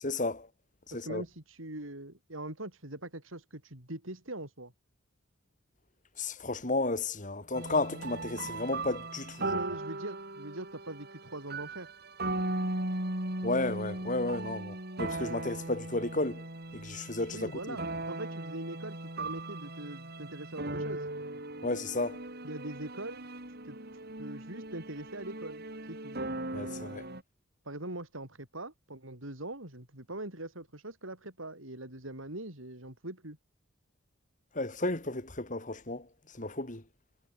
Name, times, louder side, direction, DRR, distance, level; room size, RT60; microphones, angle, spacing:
voice 1, 0.0-0.5 0.9-1.2 6.2-9.5 13.4-16.4 16.7-17.8 21.6-22.2 26.5-27.0 34.5-36.1 36.3-36.8, left 2 dB, 40° left, 3.6 m, -33 dB
voice 2, 0.9-4.7 9.4-11.9 17.3-21.1 22.4-26.2 27.6-33.4, right 1 dB, 85° right, 6.5 m, -42 dB
sound 1, 7.5-27.2, right 2 dB, 50° right, 6.4 m, -38 dB
head